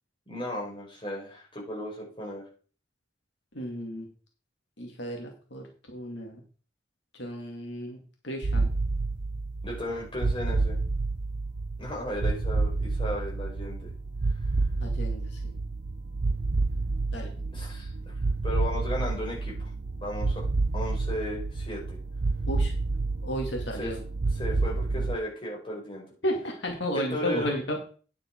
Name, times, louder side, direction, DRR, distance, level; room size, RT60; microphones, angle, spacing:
voice 1, 0.3-2.4 9.6-10.8 11.8-13.9 17.5-17.9 18.4-19.5 20.0-20.5 20.7-22.0 23.8-23.9 24.4-26.0 26.9-27.5, left 1 dB, 25° left, -3 dB, 4.7 m, -35 dB
voice 2, 3.5-4.1 4.8-6.4 7.1-8.0 8.2-8.7 14.8-15.6 17.1-17.3 22.5-22.7 23.2-24.0 26.2-27.8, equal, 80° left, 1 dB, 2.3 m, -33 dB
sound 1, 8.4-25.2, right 3 dB, 65° right, 0.7 m, -29 dB
9.7 x 7.5 x 4.6 m, 0.39 s
head